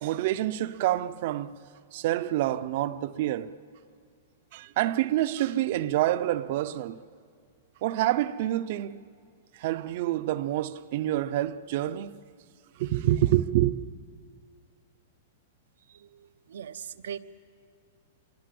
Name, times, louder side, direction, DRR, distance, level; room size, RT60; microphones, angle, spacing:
voice 1, 0.0-1.5 1.9-3.6 4.5-7.0 7.8-9.0 9.6-12.2 12.8-13.7, right 14 dB, 40° right, 0.6 m, -27 dB
voice 2, 15.9-17.2, right 8 dB, 90° right, 0.9 m, -40 dB
25.5 x 23.0 x 7.7 m
supercardioid pair, 175°, 0 cm